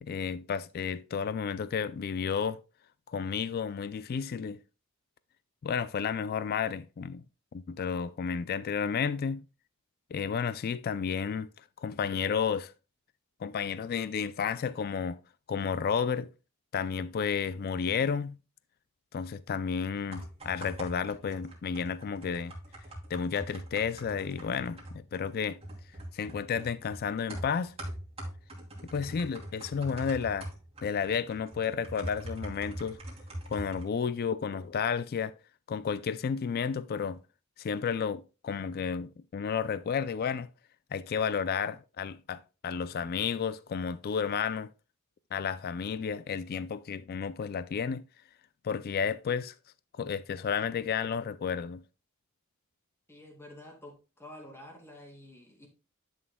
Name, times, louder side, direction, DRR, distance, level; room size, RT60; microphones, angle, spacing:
voice 1, 0.0-2.6 3.1-4.6 5.6-7.2 7.5-9.4 10.1-11.5 11.8-12.7 13.4-15.2 15.5-16.3 16.7-18.4 19.1-22.5 23.1-25.6 26.1-27.7 28.9-30.5 30.8-33.0 33.5-35.4 35.7-37.2 37.6-40.5 40.9-44.7 45.3-48.0 48.6-49.5 49.9-51.8, left 6 dB, 45° left, 0.3 m, -32 dB
sound 1, 20.1-33.8, right 1 dB, 25° right, 2.7 m, -43 dB
voice 2, 53.1-55.7, left 1 dB, 10° left, 2.3 m, -49 dB
11.0 x 6.3 x 2.2 m
head